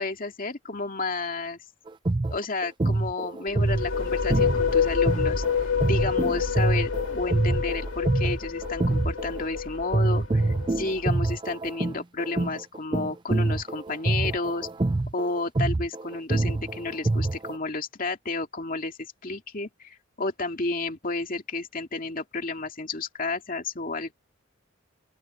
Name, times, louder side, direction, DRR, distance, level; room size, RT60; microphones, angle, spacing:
voice 1, 0.0-1.6 2.3-5.4 5.9-14.7 15.1-24.1, left 3 dB, 45° left, 2.4 m, -31 dB
sound 1, 1.9-9.6 9.9-17.6, right 2 dB, 25° right, 0.4 m, -26 dB
sound 2, 3.5-11.1, left 6 dB, 80° left, 2.4 m, -28 dB
open air
head